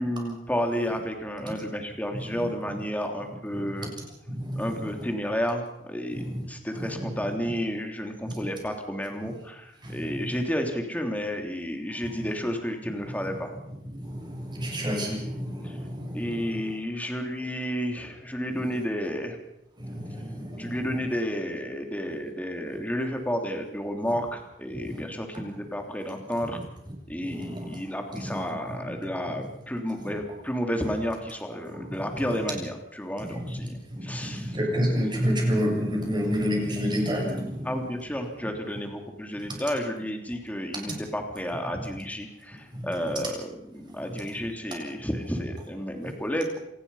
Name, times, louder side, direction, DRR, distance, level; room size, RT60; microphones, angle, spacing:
voice 1, 0.0-3.9 4.6-13.5 15.6-15.8 16.1-19.4 20.6-26.6 27.1-34.6 37.6-46.6, equal, 10° left, 4 dB, 3.2 m, -31 dB
voice 2, 3.5-3.9 4.3-5.0 6.1-6.4 6.7-7.1 9.8-10.4 12.0-12.3 13.2-13.4 14.0-16.6 19.8-21.1 24.8-24.9 27.2-27.8 28.1-28.4 28.7-28.9 31.7-32.0 33.2-33.6 33.9-37.8 39.5-39.6 40.9-41.0 42.7-42.9 46.0-46.1, equal, 25° right, 0 dB, 7.4 m, -30 dB
27.0 x 19.5 x 5.7 m, 0.82 s
head